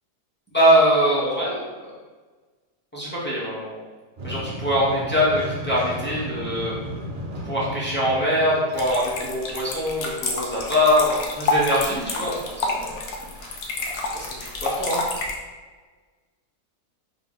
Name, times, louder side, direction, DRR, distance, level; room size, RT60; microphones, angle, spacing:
voice 1, 0.5-1.7 2.9-3.8 4.2-6.8 7.5-12.9 14.1-14.3 14.6-15.0, equal, 10° left, -9 dB, 0.5 m, -22 dB
sound 1, 4.2-15.2, equal, 90° right, 0.5 m, -37 dB
sound 2, 8.7-15.3, left 3 dB, 65° left, 0.9 m, -28 dB
3.7 x 2.1 x 3.8 m, 1.4 s
omnidirectional pair, 1.8 m